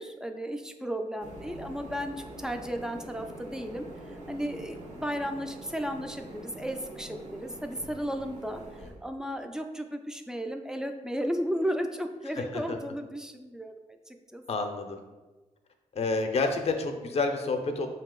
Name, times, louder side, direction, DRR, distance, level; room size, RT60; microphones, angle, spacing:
voice 1, 0.0-3.9 4.3-13.7 14.1-14.4, equal, 5° right, 5 dB, 0.3 m, -34 dB
sound 1, 1.2-8.9, right 1 dB, 70° right, 1.2 m, -45 dB
voice 2, 12.4-12.8 14.5-15.0 15.9-17.9, left 3 dB, 50° left, 5 dB, 0.5 m, -29 dB
4.8 x 2.7 x 3.7 m, 1.2 s
cardioid pair, 105°, 13 cm